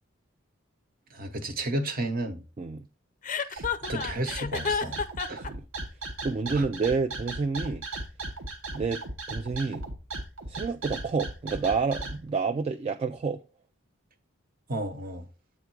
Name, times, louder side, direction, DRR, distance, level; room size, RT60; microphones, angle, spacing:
voice 1, 1.1-2.4 3.5-5.0 5.3-5.5 6.5-6.7 14.7-15.3, right 1 dB, 45° right, 0.9 m, -32 dB
Chuckle chortle, 3.2-5.5, left 6 dB, 40° left, 0.5 m, -30 dB
sound 1, 3.6-12.2, right 2 dB, 90° right, 1.2 m, -36 dB
voice 2, 5.3-5.6 6.2-7.8 8.7-9.0 9.3-9.8 10.5-13.4, right 4 dB, 30° right, 0.3 m, -29 dB
8.1 x 3.5 x 4.6 m
head